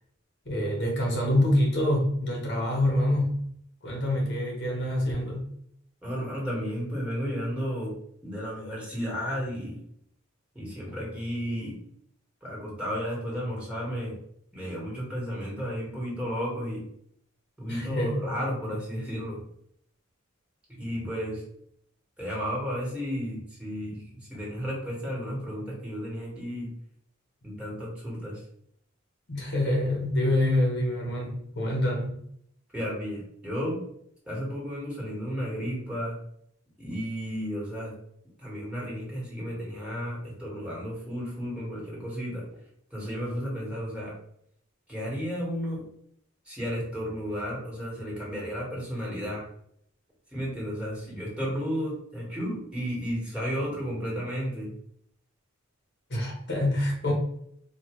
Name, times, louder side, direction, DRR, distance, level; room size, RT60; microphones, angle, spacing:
voice 1, 0.4-3.4 3.8-5.5 17.7-18.3 29.3-32.2 56.1-57.1, left 1 dB, 55° left, -1 dB, 1.2 m, -26 dB
voice 2, 6.0-7.9 8.2-9.8 10.5-11.8 12.4-14.2 14.5-16.8 17.6-19.4 20.7-21.4 22.2-26.7 27.4-28.4 32.7-33.8 34.3-36.1 36.8-37.9 38.4-42.4 42.9-44.1 44.9-45.8 46.4-49.4 50.3-54.7, equal, 5° right, -6 dB, 1.6 m, -33 dB
4.6 x 2.7 x 3.0 m, 0.70 s
head